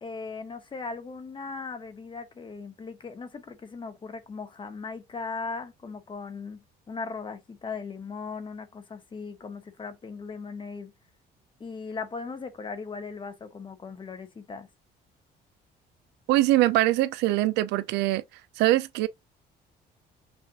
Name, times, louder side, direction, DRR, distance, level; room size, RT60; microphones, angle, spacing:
voice 1, 0.0-10.9 11.6-14.7, left 4 dB, 30° left, 1.0 m, -38 dB
voice 2, 16.3-18.2 18.6-19.1, right 16 dB, 85° right, 0.4 m, -23 dB
6.2 x 2.4 x 2.8 m
cardioid pair, 110°, 17 cm